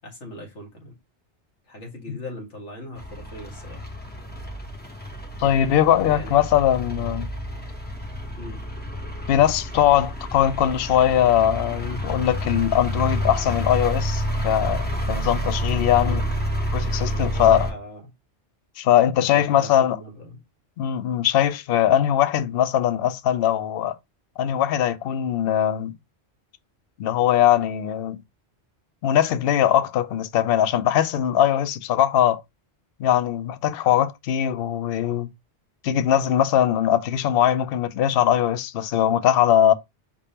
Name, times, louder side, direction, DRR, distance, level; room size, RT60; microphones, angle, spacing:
voice 1, 0.0-0.9 1.7-3.8 5.4-6.4 8.4-8.6 15.7-16.3 17.1-18.0 19.3-20.4, left 1 dB, 80° left, 2.1 m, -40 dB
sound 1, 3.0-17.7, equal, 10° left, 0.7 m, -29 dB
voice 2, 5.4-7.3 9.3-16.2 16.7-17.7 18.8-20.0 20.8-24.0 24.4-25.9 27.0-28.2 29.0-32.4 33.0-35.3 35.8-39.7, left 10 dB, 65° left, 0.7 m, -21 dB
5.1 x 3.4 x 2.7 m
omnidirectional pair, 1.2 m